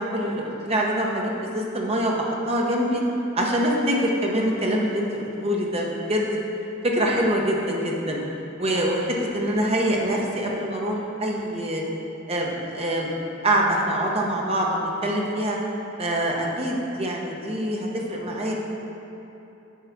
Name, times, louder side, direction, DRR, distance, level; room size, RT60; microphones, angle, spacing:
voice 1, 0.0-3.0 3.3-6.4 6.8-8.2 8.6-11.8 12.3-13.1 13.4-15.6 16.0-18.6, equal, 30° right, -1 dB, 0.9 m, -25 dB
7.4 x 4.7 x 5.9 m, 2.9 s
head